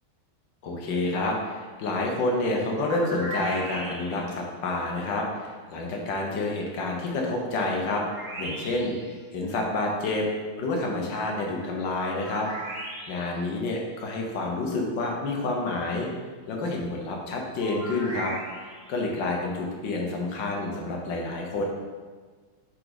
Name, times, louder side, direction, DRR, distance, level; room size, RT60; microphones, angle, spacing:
voice 1, 0.6-8.0 8.4-10.3 10.6-12.5 13.1-16.1 16.5-18.3 18.6-21.6, left 2 dB, 60° left, 0 dB, 1.7 m, -29 dB
sound 1, 2.8-4.4 7.9-9.1 12.2-13.4 17.6-18.9, right 1 dB, 40° right, 2.1 m, -37 dB
7.4 x 5.0 x 4.1 m, 1.5 s
omnidirectional pair, 2.4 m